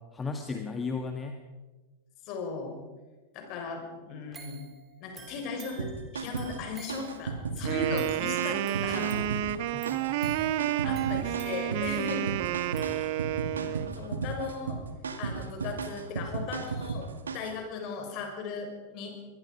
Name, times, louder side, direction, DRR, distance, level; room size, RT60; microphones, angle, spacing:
voice 1, 0.1-1.4 9.7-10.4 13.5-14.1, left 4 dB, 15° left, 5 dB, 1.8 m, -36 dB
voice 2, 2.3-2.8 3.3-4.6 5.0-5.9 6.1-9.2 10.8-12.4 14.0-14.8 15.2-19.1, left 4 dB, 40° left, 3 dB, 5.9 m, -37 dB
sound 1, 4.3-13.6 14.0-14.1, right 5 dB, 20° right, 4.0 m, -52 dB
sound 2, 5.8-17.6, right 4 dB, 70° right, 2.1 m, -35 dB
Wind instrument woodwind instrument, 7.6-13.9, right 14 dB, 50° right, 1.0 m, -30 dB
23.5 x 21.5 x 5.2 m, 1.2 s
figure-of-eight pair, 90°, 0 cm